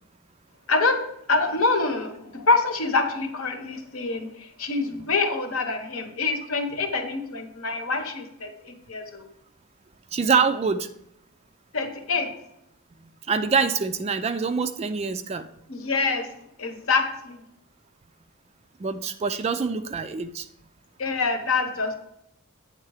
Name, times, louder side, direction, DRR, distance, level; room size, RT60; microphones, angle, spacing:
voice 1, 0.7-1.0 1.3-9.3 11.7-12.3 15.7-16.3 16.6-17.4 21.0-22.0, left 3 dB, 65° left, 6 dB, 0.9 m, -26 dB
voice 2, 10.1-10.9 13.3-15.4 18.8-20.4, right 5 dB, 30° right, 10 dB, 0.3 m, -25 dB
8.6 x 3.7 x 4.8 m, 0.79 s
head